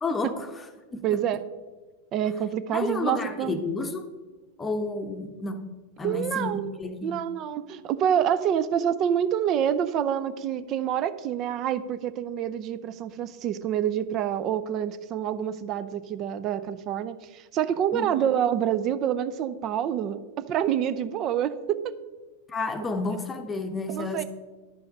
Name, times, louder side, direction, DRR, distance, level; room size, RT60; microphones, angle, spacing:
voice 1, 0.0-0.5 0.9-1.2 2.7-4.1 4.6-5.7 6.0-7.2 17.9-18.2 22.5-24.2, left 3 dB, 15° left, 6 dB, 0.9 m, -31 dB
voice 2, 1.0-1.4 2.1-3.6 6.0-6.7 7.0-21.8 23.9-24.2, right 9 dB, 35° right, 12 dB, 0.6 m, -27 dB
11.0 x 5.7 x 5.2 m, 1.2 s
figure-of-eight pair, 90°, 0 cm